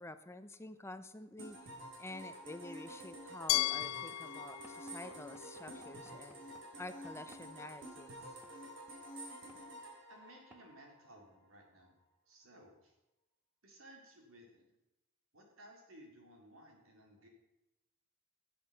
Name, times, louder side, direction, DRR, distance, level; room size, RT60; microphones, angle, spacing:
voice 1, 0.0-1.6 2.0-6.4 6.8-8.1, left 2 dB, 15° left, 11 dB, 0.5 m, -49 dB
sound 1, 1.4-11.1, right 1 dB, 60° right, 3.4 m, -50 dB
Glass, 3.5-6.4, left 15 dB, 85° left, 0.4 m, -37 dB
Knock / Wood, 4.6-7.5 8.4-8.6 9.5-9.7 10.5-10.7, equal, 10° right, 1.2 m, -62 dB
voice 2, 10.1-11.9 12.3-13.0 13.6-14.7 15.3-17.3, right 1 dB, 85° right, 1 dB, 3.7 m, -58 dB
17.0 x 8.7 x 5.6 m, 0.94 s
head